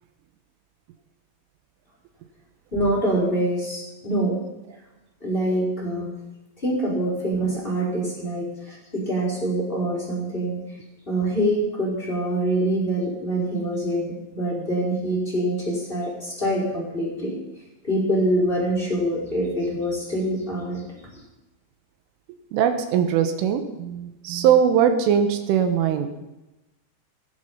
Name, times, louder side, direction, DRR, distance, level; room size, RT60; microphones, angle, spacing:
voice 1, 2.7-4.4 5.2-6.1 6.6-10.6 11.1-17.3 17.8-20.8 21.1-21.2, right 1 dB, 10° left, -4 dB, 4.2 m, -25 dB
voice 2, 22.5-26.1, right 8 dB, 85° right, 8 dB, 3.7 m, -21 dB
17.5 x 10.5 x 5.7 m, 1.0 s
omnidirectional pair, 5.6 m